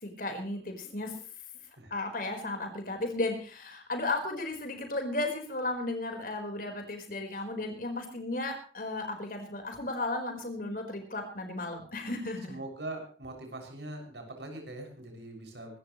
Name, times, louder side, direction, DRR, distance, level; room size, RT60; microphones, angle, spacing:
voice 1, 0.0-1.3 1.9-12.6, left 2 dB, 50° left, 4 dB, 4.7 m, -34 dB
voice 2, 12.5-15.8, right 2 dB, 75° right, 3 dB, 6.9 m, -42 dB
24.0 x 14.0 x 3.2 m, 0.40 s
head